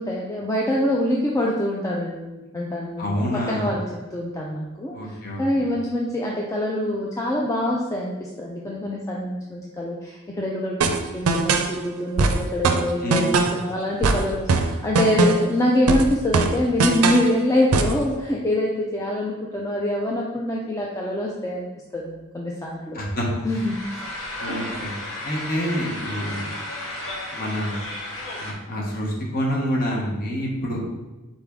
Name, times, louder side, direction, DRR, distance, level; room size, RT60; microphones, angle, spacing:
voice 1, 0.0-21.7 21.9-23.0 23.4-24.1 24.5-24.7, left 1 dB, 15° left, -3 dB, 0.4 m, -25 dB
voice 2, 3.0-3.7 4.9-5.7 13.0-13.4 22.9-23.3 24.4-24.9 25.2-26.6 27.3-27.8 28.4-30.8, equal, 40° left, -2 dB, 1.1 m, -27 dB
sound 1, 10.8-11.7 12.2-13.6 14.0-15.5 15.9-17.3 17.7-18.0, right 3 dB, 75° right, 0.4 m, -21 dB
sound 2, 23.5-28.5, left 1 dB, 65° left, 0.9 m, -33 dB
4.1 x 3.6 x 3.5 m, 1.1 s
head